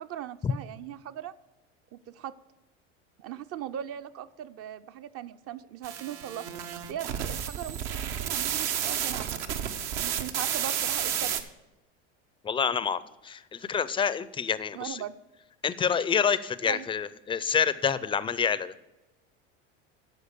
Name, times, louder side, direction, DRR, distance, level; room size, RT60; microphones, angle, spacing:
voice 1, 0.0-1.3 1.9-2.3 3.2-6.5 6.9-9.3 10.0-11.5 14.7-15.1 16.7-16.9, right 10 dB, 40° right, 12 dB, 0.6 m, -39 dB
sound 1, 5.8-11.4, right 9 dB, 70° right, 1.0 m, -31 dB
voice 2, 12.4-15.0 15.6-18.7, left 7 dB, 15° left, 16 dB, 0.4 m, -27 dB
9.9 x 6.4 x 6.7 m, 1.1 s
hypercardioid pair, 80°, 36 cm